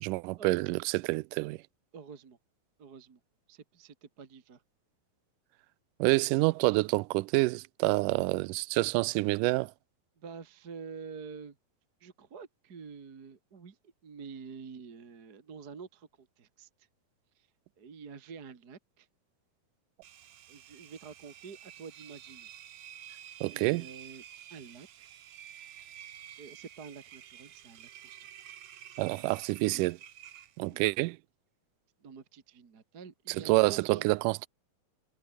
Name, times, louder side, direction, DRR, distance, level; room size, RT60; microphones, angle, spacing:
voice 1, 0.0-1.6 6.0-9.7 23.4-23.9 29.0-30.0 30.6-31.2 33.3-34.5, right 23 dB, 85° right, 1.9 m, -27 dB
voice 2, 1.9-2.4 2.8-3.2 3.5-4.6 10.2-11.6 12.0-16.9 17.4-17.5 17.8-19.1 20.5-22.5 23.0-24.2 24.5-25.1 26.4-28.3 29.2-29.8 30.7-30.8 32.0-34.1, right 5 dB, 35° right, 1.8 m, -48 dB
Engine, 20.0-30.9, right 11 dB, 60° right, 2.5 m, -50 dB
omnidirectional pair, 4.2 m